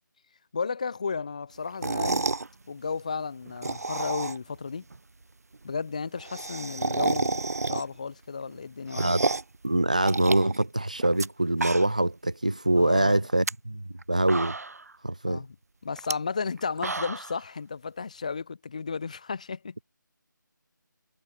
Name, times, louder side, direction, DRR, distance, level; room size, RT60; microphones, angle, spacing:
voice 1, 0.5-2.3 2.7-4.8 5.6-9.1 12.7-13.2 15.3-15.5 15.8-19.7, left 5 dB, 20° left, 1.3 m, -33 dB
sound 1, 1.7-2.5 3.5-4.6 4.9-5.0 5.2-5.3 5.5-5.6 5.9-8.1 8.5-9.6 10.0-11.3 11.5-12.1 12.5-12.6 13.2-13.5 14.0-14.1 14.3-14.9 16.0-16.1 16.6-17.4, right 3 dB, 50° right, 2.9 m, -30 dB
voice 2, 9.0-9.3 9.6-14.6 15.0-15.4, right 1 dB, 20° right, 0.4 m, -24 dB
figure-of-eight pair, 180°, 11 cm